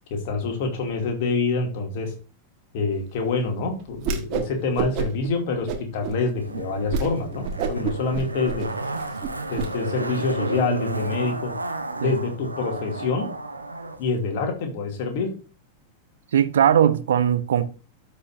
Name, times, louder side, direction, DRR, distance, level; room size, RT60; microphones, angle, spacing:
voice 1, 0.1-2.1 2.7-8.7 9.5-11.5 12.0-13.3 14.0-15.3, left 4 dB, 50° left, 2.6 m, -26 dB
Whoosh swoosh swish, 4.0-4.5 4.8-5.3 5.7-6.2 6.5-6.6 6.9-7.1 7.4-9.7, right 6 dB, 40° right, 1.5 m, -28 dB
Zipper (clothing), 6.3-14.0 14.3-14.4, right 2 dB, 85° right, 1.1 m, -32 dB
voice 2, 16.3-17.6, right 9 dB, 65° right, 0.8 m, -19 dB
13.0 x 5.4 x 2.6 m
figure-of-eight pair, 90°, 0 cm